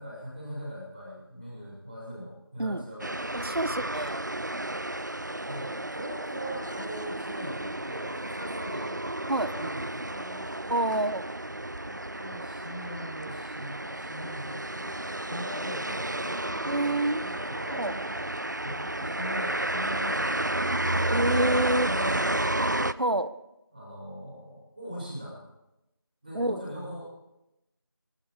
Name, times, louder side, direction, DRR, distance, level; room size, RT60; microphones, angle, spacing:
voice 1, 0.0-3.5 5.4-10.8 11.8-18.2 18.6-20.7 21.7-22.7 23.7-25.5 26.2-27.1, equal, 10° right, -15 dB, 5.0 m, -41 dB
sound 1, 3.0-22.9, right 1 dB, 50° right, 0.6 m, -32 dB
voice 2, 3.3-4.2 9.3-9.5 10.7-11.2 16.6-17.2 17.7-17.9 21.1-21.9 23.0-23.3 26.3-26.6, right 1 dB, 75° right, 13 dB, 1.2 m, -27 dB
24.0 x 11.5 x 5.0 m, 0.90 s
figure-of-eight pair, 180°, 13 cm